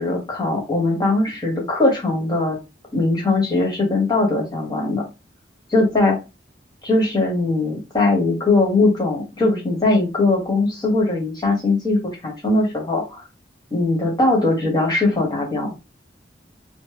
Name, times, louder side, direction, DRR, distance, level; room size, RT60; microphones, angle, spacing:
voice 1, 0.0-2.6 2.9-5.0 5.7-6.2 6.8-13.2 13.7-15.7, left 2 dB, 25° left, -2 dB, 1.3 m, -20 dB
3.1 x 2.0 x 3.4 m, 0.26 s
head